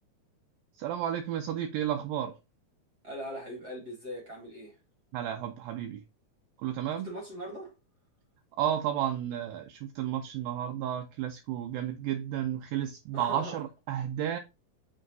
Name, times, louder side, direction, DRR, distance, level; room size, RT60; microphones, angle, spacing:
voice 1, 0.8-2.4 5.1-6.0 6.6-7.1 8.6-14.4, right 10 dB, 80° right, 2.1 m, -32 dB
voice 2, 3.0-4.8 7.0-7.7 13.1-13.6, equal, 40° right, 1.5 m, -40 dB
6.6 x 3.6 x 4.0 m
omnidirectional pair, 4.4 m